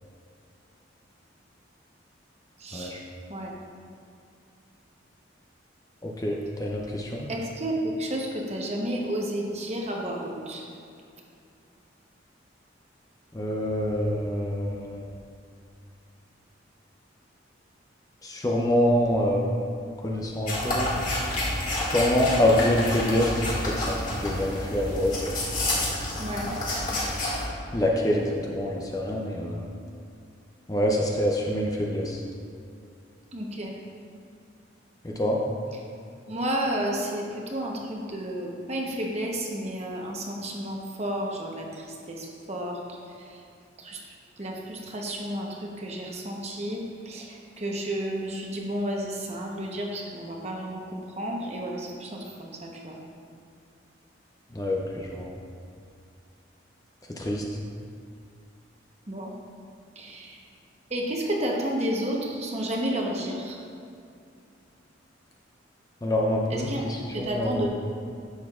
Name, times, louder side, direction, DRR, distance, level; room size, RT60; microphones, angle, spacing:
voice 1, 2.6-2.9 3.3-3.5 7.3-10.6 26.2-26.5 33.3-33.8 36.3-42.8 43.2-43.3 43.8-44.0 44.4-53.0 59.1-59.3 60.0-60.4 60.9-63.6 66.5-67.7, right 1 dB, 35° right, -1 dB, 0.9 m, -31 dB
voice 2, 6.0-7.3 13.3-15.0 18.2-19.5 20.0-20.9 21.8-25.1 27.7-29.7 30.7-32.2 35.0-35.4 54.5-55.3 57.2-57.4 66.0-67.7, left 1 dB, 20° left, -2 dB, 0.5 m, -26 dB
sound 1, 20.5-27.4, left 1 dB, 40° left, 1.9 m, -29 dB
10.5 x 7.2 x 2.4 m, 2.5 s
head